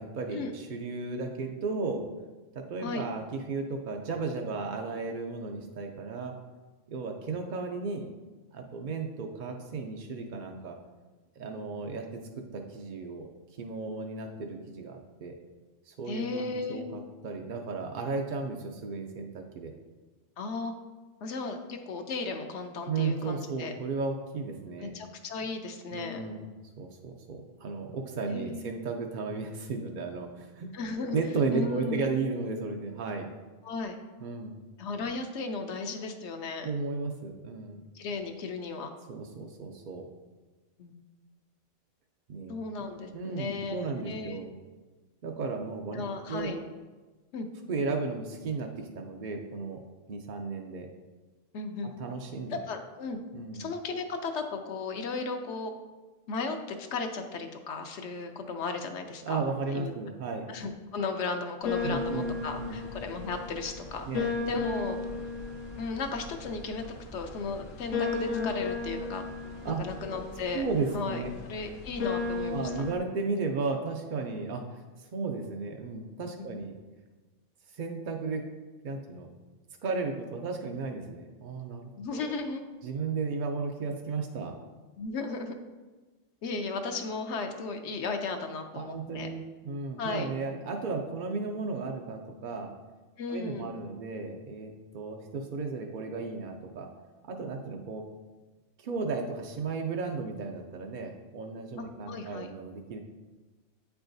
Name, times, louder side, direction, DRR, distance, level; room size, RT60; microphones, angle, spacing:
voice 1, 0.0-2.0 2.5-6.3 6.9-8.1 8.5-10.8 11.4-12.0 12.5-13.3 13.6-15.3 15.9-19.7 22.9-24.9 25.9-26.5 26.8-30.7 31.1-33.3 34.2-34.6 36.6-37.8 39.1-40.1 42.3-42.5 43.1-44.5 45.2-46.0 46.3-46.5 47.7-48.7 48.9-49.8 50.1-50.9 52.0-52.6 53.3-53.7 59.3-60.5 61.8-62.8 64.1-64.3 69.6-69.8 70.5-71.3 72.5-76.8 77.7-78.4 78.8-79.3 79.8-82.3 82.8-84.5 88.7-92.7 93.3-96.9 97.2-98.0 98.8-103.0, right 4 dB, 60° right, 2 dB, 0.5 m, -34 dB
voice 2, 16.1-16.8 20.4-20.7 21.2-23.8 24.8-26.2 28.2-28.7 30.7-31.2 31.5-32.1 33.6-34.0 34.8-36.7 37.9-38.9 40.8-41.0 42.5-44.4 45.9-46.6 47.3-47.5 51.5-51.9 52.5-53.2 53.5-55.7 56.3-59.9 60.5-65.0 65.8-66.9 67.1-69.2 69.7-70.7 70.9-72.7 76.4-76.6 82.0-82.6 85.0-85.5 86.4-89.3 90.0-90.3 93.2-93.8 101.8-102.5, left 4 dB, 70° left, 5 dB, 0.8 m, -35 dB
sound 1, 61.6-73.0, left 4 dB, 90° left, 1.1 m, -35 dB
8.6 x 4.7 x 2.6 m, 1.3 s
omnidirectional pair, 1.3 m